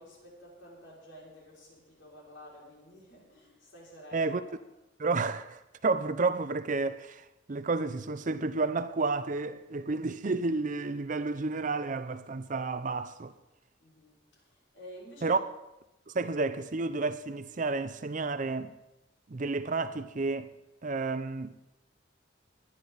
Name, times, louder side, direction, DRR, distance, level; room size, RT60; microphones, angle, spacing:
voice 1, 0.0-4.5 13.8-15.4, equal, 75° left, 5.7 m, -51 dB
voice 2, 5.0-13.3 15.2-15.4 16.1-18.7 19.3-20.5 20.8-21.6, right 3 dB, 40° right, 0.6 m, -31 dB
21.0 x 10.0 x 4.0 m
head